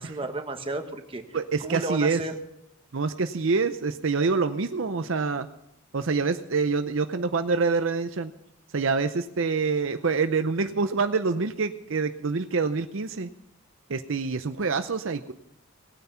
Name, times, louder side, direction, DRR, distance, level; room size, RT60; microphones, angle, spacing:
voice 1, 0.0-2.4, right 2 dB, 25° right, 5 dB, 1.2 m, -33 dB
voice 2, 1.3-2.2 2.9-5.5 5.9-8.3 8.7-13.3 13.9-15.3, right 4 dB, 60° right, 9 dB, 0.6 m, -26 dB
18.5 x 9.5 x 5.6 m, 0.83 s
head